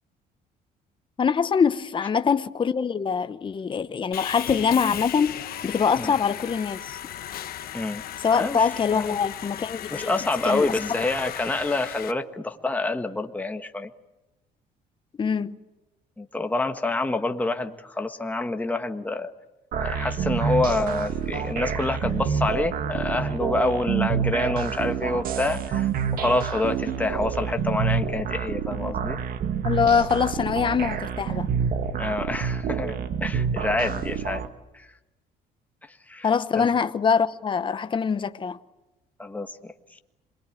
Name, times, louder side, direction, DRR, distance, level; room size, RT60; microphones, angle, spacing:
voice 1, 1.2-5.3 5.6-7.0 8.2-10.1 10.4-10.7 15.2-15.6 29.6-31.5 36.2-38.6, left 6 dB, 30° left, 1.0 m, -24 dB
Sawing, 4.1-12.1, left 11 dB, 60° left, 1.3 m, -36 dB
voice 2, 9.9-13.9 16.2-19.3 19.8-29.2 32.0-34.4 34.7-34.9 36.1-36.3 36.5-36.7 39.2-39.7, left 2 dB, 10° left, 1.5 m, -27 dB
sound 1, 19.7-34.5, right 7 dB, 60° right, 1.9 m, -28 dB
27.0 x 21.5 x 9.2 m
cardioid pair, 110°, 17 cm